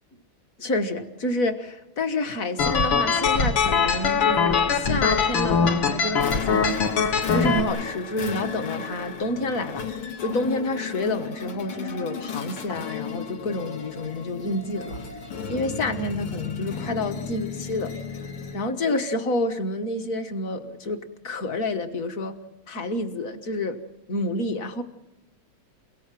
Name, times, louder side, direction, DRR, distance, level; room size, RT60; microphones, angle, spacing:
voice 1, 0.6-6.8 7.3-9.9 10.2-15.0 15.5-18.0 18.5-22.4 22.7-23.8 24.1-24.8, left 2 dB, 40° left, 7 dB, 1.6 m, -29 dB
sound 1, 2.6-7.6, left 5 dB, 65° left, 2.2 m, -22 dB
sound 2, 6.2-18.7, left 6 dB, 80° left, 2.7 m, -34 dB
28.5 x 17.5 x 7.6 m, 0.97 s
omnidirectional pair, 2.4 m